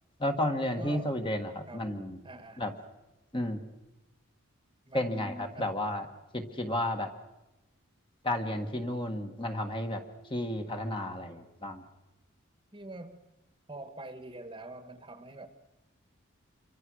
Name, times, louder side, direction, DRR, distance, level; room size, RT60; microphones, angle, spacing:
voice 1, 0.2-2.2 2.6-2.7 3.3-3.6 4.9-6.1 6.3-7.1 8.2-10.0 10.3-11.8, left 1 dB, 25° left, 1.7 m, -32 dB
voice 2, 0.8-1.2 1.7-1.9 2.2-2.7 4.9-5.8 12.7-13.2 13.7-15.5, right 2 dB, 25° right, 1.4 m, -45 dB
27.5 x 24.0 x 6.4 m
head